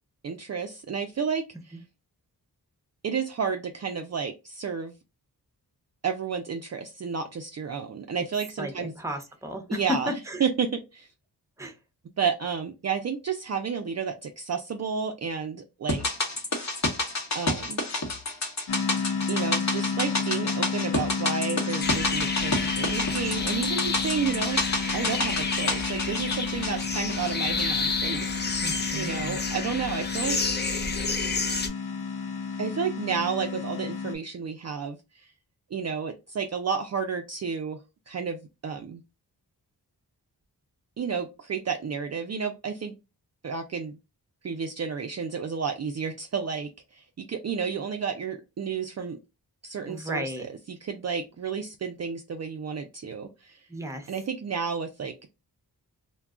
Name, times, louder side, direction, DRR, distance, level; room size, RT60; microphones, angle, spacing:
voice 1, 0.2-1.8 3.0-4.9 6.0-8.9 9.7-11.1 12.2-16.0 17.3-17.9 19.3-24.6 24.9-28.7 28.9-30.4 32.6-35.3 35.7-37.8 38.1-39.0 41.0-42.9 43.4-43.9 44.4-49.2 49.6-53.7 54.1-55.3, right 6 dB, 40° right, 0.4 m, -31 dB
voice 2, 8.6-10.4 11.6-11.8 28.6-29.4 49.9-50.5 53.7-54.1, left 1 dB, 5° right, 0.8 m, -33 dB
sound 1, 15.9-28.2 28.5-28.6, left 2 dB, 45° left, 1.0 m, -30 dB
sound 2, 18.7-34.2, left 5 dB, 75° left, 0.7 m, -32 dB
sound 3, 21.8-31.7, left 4 dB, 25° left, 0.5 m, -30 dB
2.3 x 2.2 x 3.6 m
cardioid pair, 65°, 40 cm